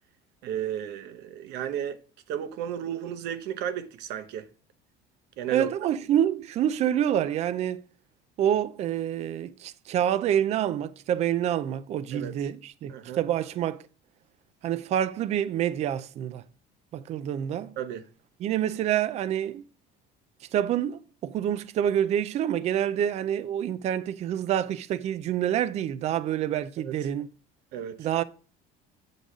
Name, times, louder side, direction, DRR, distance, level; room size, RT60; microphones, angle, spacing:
voice 1, 0.4-2.0 2.3-4.5 5.4-5.7 12.1-12.5 12.9-13.2 17.8-18.0 26.8-26.9 27.7-28.1, right 10 dB, 65° right, 0.8 m, -33 dB
voice 2, 5.5-7.8 8.4-13.8 14.6-16.4 16.9-17.7 18.4-19.6 20.5-27.3 28.0-28.2, right 10 dB, 35° right, 0.4 m, -27 dB
8.2 x 3.9 x 4.8 m
cardioid pair, 160°, 18 cm